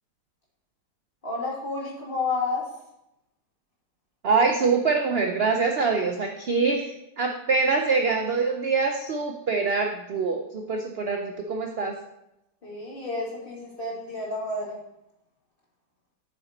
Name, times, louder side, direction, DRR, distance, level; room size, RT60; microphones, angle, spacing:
voice 1, 1.2-2.7 12.6-14.8, left 3 dB, 30° left, -3 dB, 2.1 m, -30 dB
voice 2, 4.2-12.0, right 4 dB, 60° right, 3 dB, 0.7 m, -24 dB
7.7 x 6.2 x 4.2 m, 0.86 s
omnidirectional pair, 1.8 m